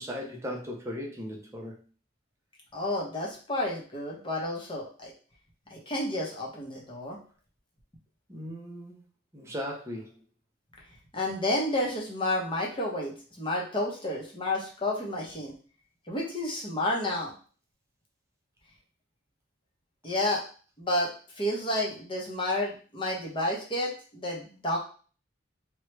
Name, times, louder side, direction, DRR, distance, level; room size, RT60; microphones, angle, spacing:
voice 1, 0.0-1.8 8.3-9.0 9.3-10.1, equal, 15° right, 0 dB, 0.6 m, -37 dB
voice 2, 2.7-5.1 5.7-7.2 11.1-15.5 16.1-17.3 20.0-20.4 20.8-21.1 21.4-24.8, left 1 dB, 25° left, -2 dB, 0.8 m, -30 dB
3.0 x 2.3 x 3.2 m, 0.39 s
head